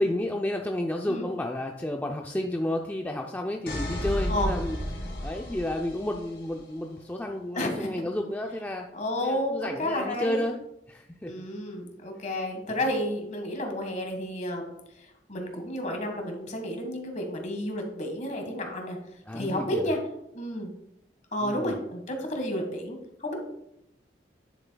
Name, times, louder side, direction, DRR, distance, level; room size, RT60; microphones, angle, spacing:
voice 1, 0.0-4.8 5.2-8.9 9.2-10.6 10.9-11.3 12.7-12.8 19.3-19.9 21.4-21.7, left 1 dB, 10° left, 2 dB, 0.4 m, -31 dB
sound 1, 3.7-6.5, equal, 70° left, 2.0 m, -32 dB
voice 2, 7.5-7.9 8.9-10.4 11.2-14.7 15.3-19.0 19.3-20.0 20.3-20.7 21.3-23.3, left 1 dB, 45° left, 3 dB, 1.6 m, -31 dB
10.0 x 7.1 x 2.3 m, 0.81 s
head